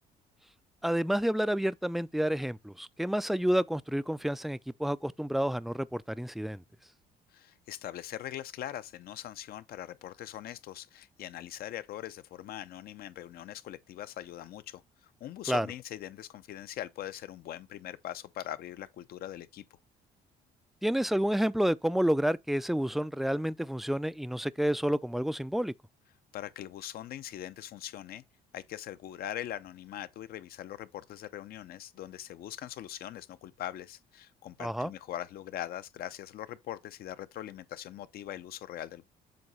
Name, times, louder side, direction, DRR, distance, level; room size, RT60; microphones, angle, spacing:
voice 1, 0.8-6.6 15.5-15.7 20.8-25.7 34.6-34.9, equal, ahead, 0.3 m, -29 dB
voice 2, 7.3-14.8 15.2-19.6 26.3-28.2 28.5-39.1, left 12 dB, 65° left, 0.6 m, -41 dB
7.8 x 2.8 x 5.4 m
cardioid pair, 110°, 17 cm